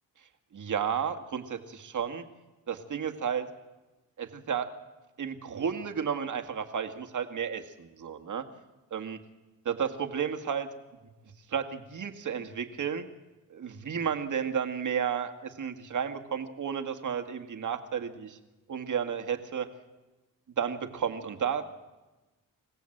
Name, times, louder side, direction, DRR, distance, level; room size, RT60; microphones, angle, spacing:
voice 1, 0.5-2.2 2.7-3.5 4.2-4.7 5.2-8.4 8.9-9.2 9.7-10.7 11.5-13.0 13.5-18.4 18.7-19.7 20.6-21.6, right 7 dB, 55° right, 6 dB, 1.9 m, -32 dB
26.5 x 15.5 x 7.9 m, 1.1 s
cardioid pair, 70°, 36 cm